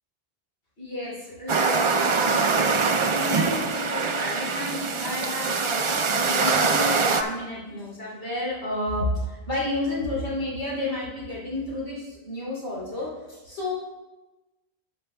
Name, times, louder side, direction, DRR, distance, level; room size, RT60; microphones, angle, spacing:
voice 1, 0.8-13.7, left 1 dB, 85° left, -6 dB, 3.3 m, -31 dB
sound 1, 1.5-7.2, right 4 dB, 50° right, 0.3 m, -23 dB
12.5 x 8.4 x 2.2 m, 1.1 s
omnidirectional pair, 1.1 m